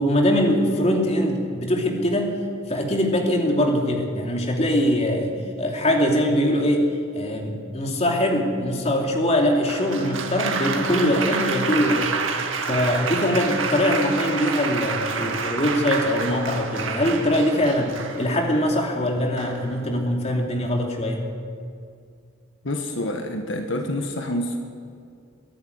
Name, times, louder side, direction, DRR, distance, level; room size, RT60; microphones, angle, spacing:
voice 1, 0.0-2.4 2.7-6.9 7.1-12.1 12.7-21.2, left 1 dB, 30° left, 1 dB, 2.7 m, -22 dB
Applause, 9.7-18.5 19.4-19.8, right 5 dB, 80° right, 2.0 m, -28 dB
voice 2, 22.6-24.6, left 1 dB, 75° left, 5 dB, 1.6 m, -27 dB
22.5 x 12.0 x 9.5 m, 2.3 s
head